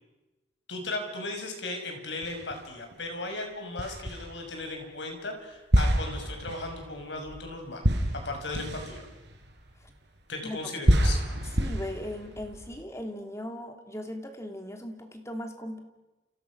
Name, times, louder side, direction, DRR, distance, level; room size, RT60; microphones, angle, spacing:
voice 1, 0.7-7.8 8.1-9.0 10.3-11.2, left 2 dB, 75° left, 4 dB, 6.2 m, -36 dB
sound 1, 2.2-3.0 3.8-4.7 5.7-10.2 10.8-12.8, equal, 70° right, 4.8 m, -28 dB
voice 2, 11.6-15.8, left 1 dB, 15° left, 5 dB, 2.9 m, -38 dB
30.0 x 29.5 x 6.3 m, 1.1 s
head